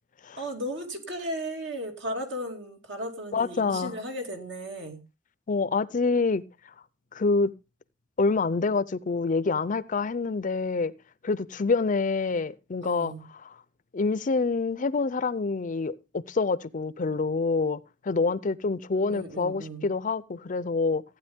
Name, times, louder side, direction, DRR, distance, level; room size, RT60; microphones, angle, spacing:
voice 1, 0.4-5.0 12.8-13.3 19.1-19.9, equal, 70° right, 2.4 m, -35 dB
voice 2, 3.3-3.9 5.5-6.4 7.1-7.5 8.2-10.9 11.2-13.1 13.9-21.0, left 4 dB, 45° left, 0.5 m, -26 dB
15.0 x 9.1 x 3.5 m
head